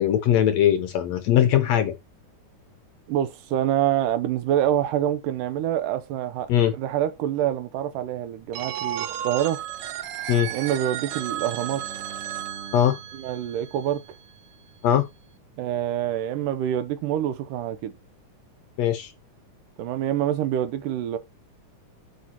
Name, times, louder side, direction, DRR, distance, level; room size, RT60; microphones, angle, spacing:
voice 1, 0.0-1.9 6.5-6.7 10.3-10.5 12.7-13.0 14.8-15.1 18.8-19.1, left 10 dB, 75° left, 1.6 m, -20 dB
voice 2, 3.1-6.5 6.8-9.6 10.5-11.9 13.1-14.0 15.6-17.9 19.8-21.2, right 11 dB, 90° right, 2.3 m, -26 dB
Telephone, 8.5-14.3, right 11 dB, 70° right, 1.7 m, -34 dB
Bowed string instrument, 10.2-14.3, right 7 dB, 35° right, 2.3 m, -47 dB
9.8 x 6.6 x 2.9 m
omnidirectional pair, 3.7 m